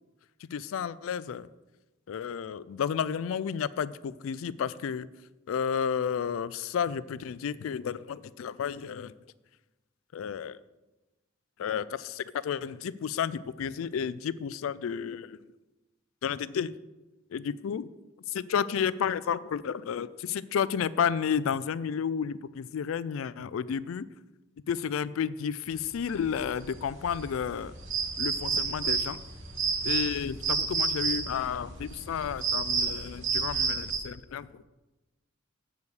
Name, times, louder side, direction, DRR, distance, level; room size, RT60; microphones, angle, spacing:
voice 1, 0.4-1.5 2.1-5.1 5.5-9.1 10.1-10.6 11.6-15.4 16.2-16.8 17.3-17.9 18.3-24.1 24.7-27.7 28.2-29.2 29.8-34.6, left 7 dB, 75° left, 17 dB, 0.3 m, -32 dB
sound 1, 25.9-34.0, right 5 dB, 65° right, 1.3 m, -31 dB
8.0 x 4.8 x 7.0 m, 1.1 s
head